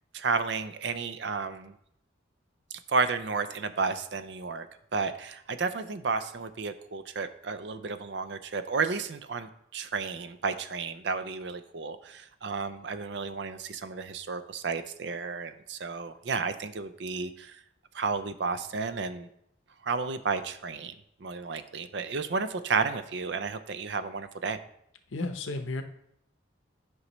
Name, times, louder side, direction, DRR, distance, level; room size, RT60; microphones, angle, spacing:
voice 1, 0.1-1.7 2.9-4.7 4.9-17.6 17.9-19.3 19.8-20.9 21.2-24.6, right 4 dB, 65° right, 11 dB, 0.5 m, -32 dB
voice 2, 25.1-25.8, left 2 dB, 85° left, 7 dB, 0.7 m, -32 dB
9.8 x 5.4 x 3.1 m, 0.72 s
head